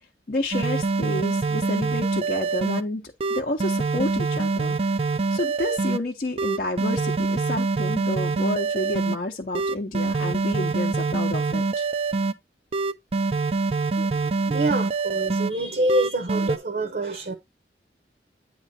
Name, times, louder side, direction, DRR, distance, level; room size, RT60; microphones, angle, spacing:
voice 1, 0.3-3.0 3.3-4.8 5.3-11.9, left 1 dB, 50° left, 0.7 m, -30 dB
sound 1, 0.5-2.8 3.2-6.0 6.4-9.2 9.5-12.3 12.7-15.5 15.9-16.6, right 3 dB, 35° right, 0.4 m, -25 dB
voice 2, 14.5-17.3, right 1 dB, 55° right, 0.9 m, -26 dB
9.1 x 3.1 x 4.1 m
head